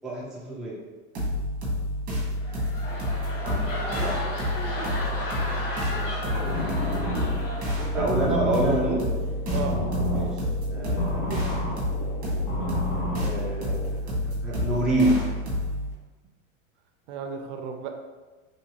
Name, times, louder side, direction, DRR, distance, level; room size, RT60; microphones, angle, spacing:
voice 1, 0.0-0.8 3.4-4.1 5.9-6.7 7.9-9.1 10.1-10.3 10.7-11.5 13.2-13.7 14.4-15.2, right 1 dB, ahead, -7 dB, 0.5 m, -27 dB
sound 1, 1.1-15.9, left 1 dB, 20° right, 1.2 m, -29 dB
sound 2, 2.4-8.3 8.6-9.0, left 1 dB, 80° left, 1.2 m, -34 dB
voice 2, 3.9-4.3 7.8-8.2 9.5-9.7 12.6-12.8 17.1-17.9, right 7 dB, 65° right, 4 dB, 0.5 m, -35 dB
sound 3, 6.3-13.9, left 1 dB, 55° left, 0.9 m, -32 dB
3.1 x 2.8 x 2.9 m, 1.3 s
supercardioid pair, 140°, 38 cm